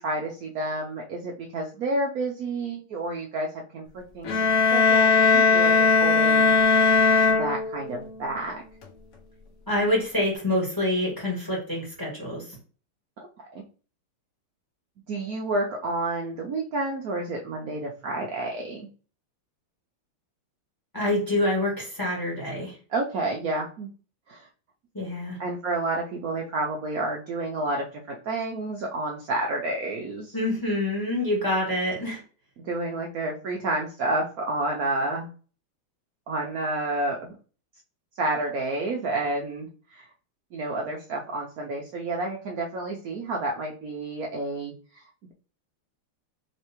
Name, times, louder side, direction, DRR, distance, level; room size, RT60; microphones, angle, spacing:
voice 1, 0.0-3.5 3.7-4.4 4.7-6.5 7.3-8.6 13.5-13.6 15.1-18.9 22.9-23.9 24.3-24.5 25.4-30.3 32.6-35.3 36.3-37.3 38.2-40.1 40.5-45.0, right 2 dB, 85° right, 0 dB, 0.7 m, -30 dB
sound 1, 4.2-8.1, left 4 dB, 85° left, 0.7 m, -19 dB
voice 2, 9.7-12.6 20.9-22.7 24.9-25.4 30.3-32.2, left 1 dB, 10° left, -2 dB, 1.6 m, -26 dB
4.6 x 3.2 x 3.0 m, 0.38 s
omnidirectional pair, 2.4 m